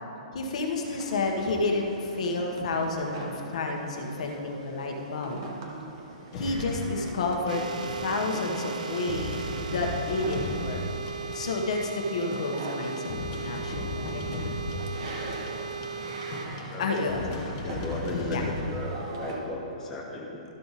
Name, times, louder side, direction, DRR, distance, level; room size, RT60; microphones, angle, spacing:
voice 1, 0.3-5.4 6.4-10.8 11.3-14.2 16.8-17.2 18.1-18.4, left 3 dB, 55° left, 2 dB, 1.1 m, -30 dB
sound 1, 0.8-19.4, right 2 dB, 35° right, 1.1 m, -43 dB
sound 2, 6.3-18.7, left 2 dB, 30° left, 1.0 m, -37 dB
sound 3, 7.5-16.5, right 6 dB, 90° right, 0.6 m, -37 dB
voice 2, 16.7-20.4, left 2 dB, 10° left, -3 dB, 0.6 m, -36 dB
13.0 x 5.7 x 4.1 m, 2.9 s
hypercardioid pair, 170°, 4 cm